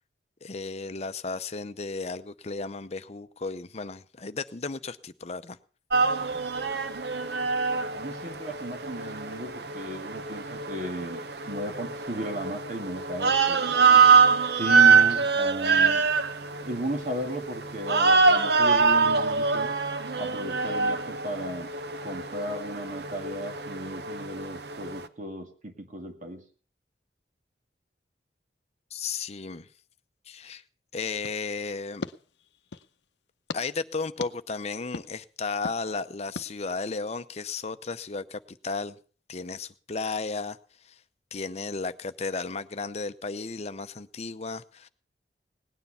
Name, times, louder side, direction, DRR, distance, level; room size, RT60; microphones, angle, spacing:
voice 1, 0.4-5.6 28.9-29.7 30.3-30.6 30.9-32.0 33.5-39.0 39.3-40.6 40.8-41.0 41.3-44.9, left 4 dB, 40° left, 12 dB, 0.7 m, -34 dB
sound 1, 5.9-25.1, right 5 dB, 65° right, 0.8 m, -24 dB
voice 2, 7.9-14.1 14.5-16.1 16.6-19.7 20.2-21.7 22.0-26.4, right 1 dB, 45° right, 5 dB, 2.0 m, -35 dB
sound 2, 31.2-32.9 33.5-33.6 34.2-34.3 34.9-35.1 35.6-35.8 36.4-36.5, left 4 dB, 80° left, 0.7 m, -39 dB
18.5 x 9.6 x 5.6 m, 0.40 s
head